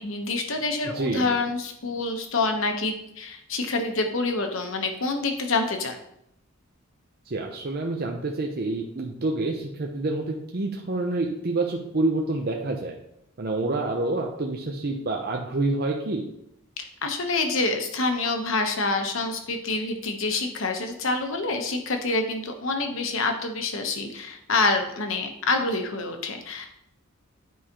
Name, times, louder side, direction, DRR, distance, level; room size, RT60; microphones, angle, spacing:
voice 1, 0.0-6.0 16.8-26.8, left 3 dB, 65° left, 4 dB, 1.0 m, -27 dB
voice 2, 0.8-1.3 7.3-12.9 13.4-16.2, right 2 dB, 45° right, 1 dB, 0.7 m, -27 dB
9.4 x 4.8 x 2.9 m, 0.77 s
head